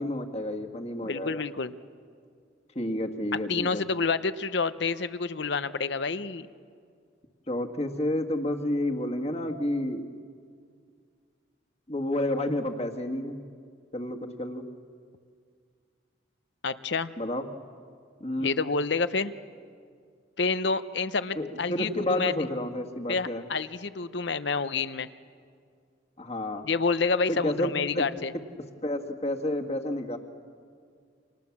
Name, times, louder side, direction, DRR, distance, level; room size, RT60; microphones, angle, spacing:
voice 1, 0.0-1.4 2.8-3.8 7.5-10.1 11.9-13.4 13.9-14.6 17.2-17.5 18.2-18.6 21.4-23.4 26.2-26.6 27.3-28.1 28.8-30.2, left 1 dB, 30° left, 4 dB, 1.7 m, -30 dB
voice 2, 1.0-1.7 3.3-6.5 16.6-17.1 18.4-19.3 20.4-22.3 23.1-25.1 26.6-28.3, left 4 dB, 65° left, 13 dB, 0.8 m, -28 dB
30.0 x 26.5 x 7.3 m, 2.2 s
head